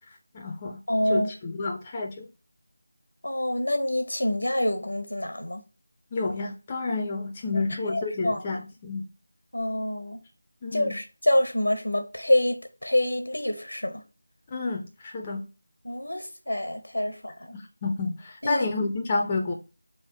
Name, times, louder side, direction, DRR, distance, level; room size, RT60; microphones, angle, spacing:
voice 1, 0.3-0.8 1.1-2.3 6.1-9.0 10.6-11.0 14.5-15.5 17.8-19.5, left 3 dB, 20° left, 0.5 m, -30 dB
voice 2, 0.9-1.3 3.2-5.6 7.5-7.6 7.9-8.4 9.5-10.2 10.7-14.0 15.8-17.3 18.4-18.7, left 1 dB, 90° left, 0.9 m, -26 dB
3.3 x 2.5 x 3.4 m
figure-of-eight pair, 170°, 0 cm